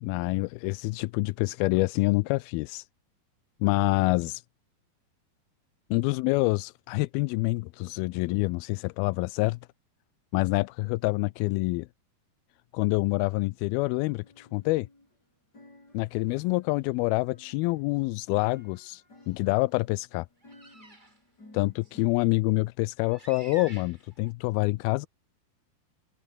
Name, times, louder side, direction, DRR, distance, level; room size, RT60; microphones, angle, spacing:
voice 1, 0.0-2.9 3.6-4.4 5.9-9.6 10.3-11.9 12.7-14.9 15.9-20.3 21.5-25.1, left 22 dB, 80° left, 2.4 m, -27 dB
sound 1, 14.2-15.2 15.5-22.2, left 2 dB, 25° left, 8.4 m, -56 dB
sound 2, 20.4-21.2 21.8-21.9 23.1-24.3, right 2 dB, 15° right, 2.5 m, -49 dB
open air
omnidirectional pair, 4.5 m